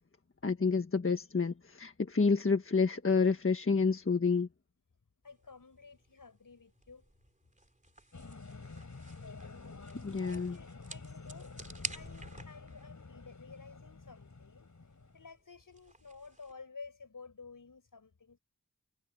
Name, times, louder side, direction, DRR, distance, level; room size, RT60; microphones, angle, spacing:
voice 1, 0.4-4.5 10.0-10.6, left 4 dB, 40° left, 1.5 m, -29 dB
voice 2, 5.2-7.1 10.3-11.5 11.9-14.7 15.1-18.4, left 4 dB, 80° left, 7.5 m, -52 dB
sound 1, 5.2-16.5, right 1 dB, 25° right, 3.3 m, -51 dB
sound 2, 8.1-15.3, left 3 dB, 60° left, 8.0 m, -49 dB
wide cardioid pair, 65°, 32 cm